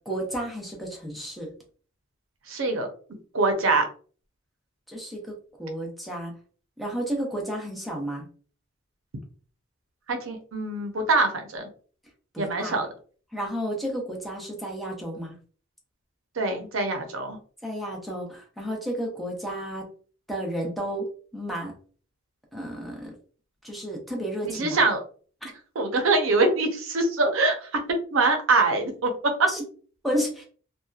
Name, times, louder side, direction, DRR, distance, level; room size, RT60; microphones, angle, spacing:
voice 1, 0.1-1.5 4.9-5.3 5.6-6.3 6.8-8.2 12.3-12.7 13.3-15.4 17.6-19.9 20.3-21.7 22.5-23.1 23.6-24.8 25.4-25.5 29.5-29.6 30.0-30.4, right 1 dB, ahead, -2 dB, 0.7 m, -32 dB
voice 2, 2.5-2.9 3.3-3.9 10.1-11.7 12.4-12.9 16.4-17.4 24.4-25.0 25.8-27.7 28.1-29.5, right 3 dB, 75° right, 5 dB, 0.6 m, -24 dB
2.7 x 2.2 x 2.3 m, 0.42 s
head